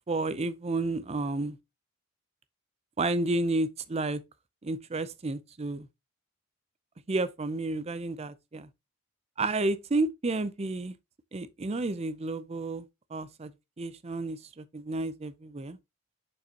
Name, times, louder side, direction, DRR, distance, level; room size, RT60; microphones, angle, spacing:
voice 1, 0.1-1.6 3.0-4.2 4.6-5.9 7.1-8.7 9.4-10.9 11.3-12.9 13.1-13.5 13.8-15.8, right 2 dB, 30° right, 0.5 m, -31 dB
6.7 x 5.5 x 2.8 m
head